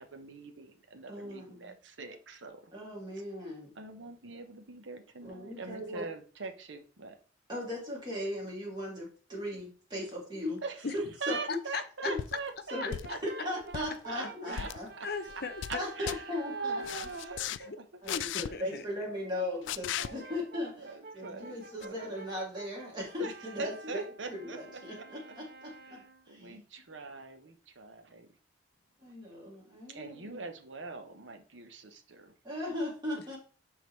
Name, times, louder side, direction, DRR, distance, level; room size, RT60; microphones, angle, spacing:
voice 1, 0.0-2.7 3.8-7.2 10.6-13.5 13.7-15.1 15.7-18.0 18.4-18.6 19.1-19.7 20.0-20.3 20.7-22.1 23.2-24.6 25.0-25.3 25.8-28.3 29.9-32.3, right 4 dB, 85° right, 1.0 m, -43 dB
voice 2, 1.1-1.7 2.7-3.7 5.2-6.0 7.5-10.6 10.9-11.4 12.0-12.2 12.7-12.9 13.2-14.9 15.7-16.8 18.0-20.7 21.1-24.0 24.3-26.0 26.3-26.6 29.0-30.4 32.4-33.4, left 1 dB, 25° right, 2.5 m, -38 dB
voice 3, 11.5-12.1 12.8-13.2 14.2-14.7 15.0-15.8 17.7-17.8 18.1-18.9, left 5 dB, 60° left, 0.7 m, -38 dB
sound 1, 12.2-12.4 12.9-13.3 13.6-13.9 14.5-14.8 15.3-15.8 16.1-16.2 16.8-17.6 18.1-18.5 19.7-20.1 21.8-21.9, left 10 dB, 80° left, 0.3 m, -36 dB
Brass instrument, 13.0-17.6 20.0-26.3, right 3 dB, 55° right, 0.7 m, -50 dB
10.5 x 3.9 x 3.2 m
head